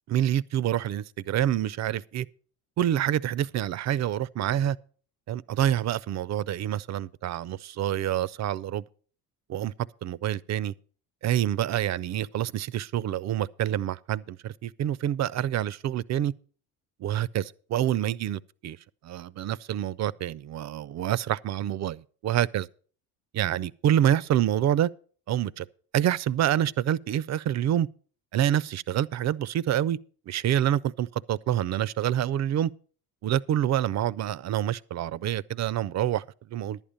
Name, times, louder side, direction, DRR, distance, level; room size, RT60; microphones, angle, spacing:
voice 1, 0.1-2.3 2.8-4.8 5.3-8.8 9.5-9.7 10.0-10.7 11.2-16.3 17.0-18.8 19.0-22.7 23.3-24.9 25.3-25.7 25.9-27.9 28.3-30.0 30.3-32.7 33.2-36.2 36.5-36.8, right 11 dB, 40° right, 0.4 m, -27 dB
11.0 x 9.0 x 5.2 m
hypercardioid pair, 70°, 46 cm